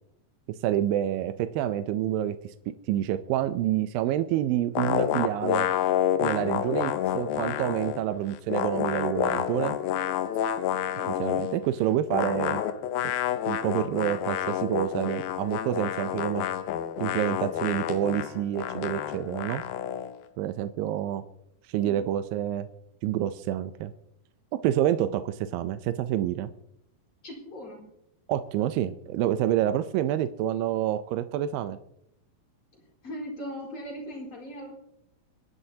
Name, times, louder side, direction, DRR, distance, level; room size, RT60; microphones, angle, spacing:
voice 1, 0.6-2.5 2.9-5.7 6.2-9.8 11.2-12.6 13.5-16.5 17.0-19.6 20.4-21.2 21.7-22.7 23.0-23.9 24.6-26.5 28.3-31.8, right 12 dB, 80° right, 10 dB, 2.3 m, -28 dB
sound 1, 4.8-8.0 8.3-11.6 12.1-20.1, left 10 dB, 80° left, 2.6 m, -29 dB
voice 2, 27.2-27.8 32.7-34.7, equal, 35° left, -2 dB, 5.1 m, -39 dB
24.5 x 11.0 x 2.8 m, 0.81 s
omnidirectional pair, 4.2 m